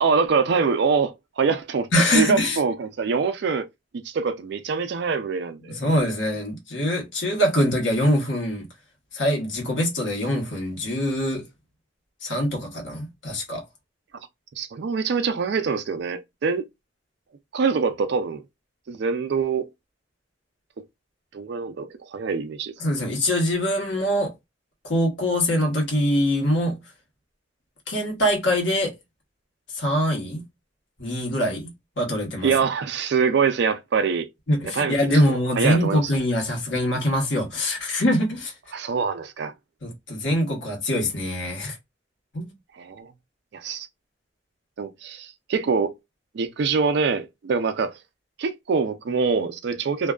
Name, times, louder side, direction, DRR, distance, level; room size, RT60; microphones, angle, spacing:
voice 1, 0.0-3.6 4.0-5.8 14.6-16.7 17.5-18.4 18.9-19.7 21.3-22.7 32.4-34.3 34.7-35.0 35.3-36.1 38.7-39.5 42.8-43.1 43.5-43.9 44.8-45.9 46.3-47.9 48.4-50.1, right 5 dB, 65° right, 0.4 m, -24 dB
voice 2, 1.9-2.6 5.7-8.6 9.1-11.5 12.2-13.6 22.8-24.3 24.8-26.8 27.9-28.9 29.7-30.4 31.0-31.7 32.0-32.5 34.5-38.5 39.8-41.8 42.3-42.5, equal, 85° left, 1.2 m, -23 dB
2.5 x 2.2 x 2.3 m
head